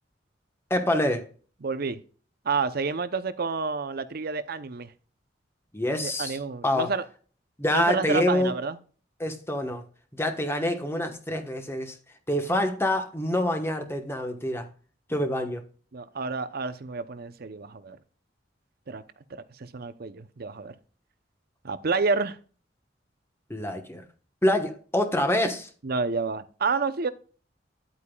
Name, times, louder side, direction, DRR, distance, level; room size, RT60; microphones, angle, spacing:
voice 1, 0.7-1.3 5.7-6.4 6.6-6.9 7.6-8.5 9.2-9.8 10.2-11.9 12.3-14.7 15.1-15.6 23.5-24.0 24.4-25.7, left 1 dB, 15° left, 1.2 m, -26 dB
voice 2, 1.6-2.0 2.4-4.9 6.0-7.0 7.7-8.8 15.9-18.0 18.9-19.0 19.3-20.7 21.6-22.4 25.8-27.1, right 4 dB, 55° right, 0.7 m, -29 dB
10.5 x 8.4 x 2.3 m
head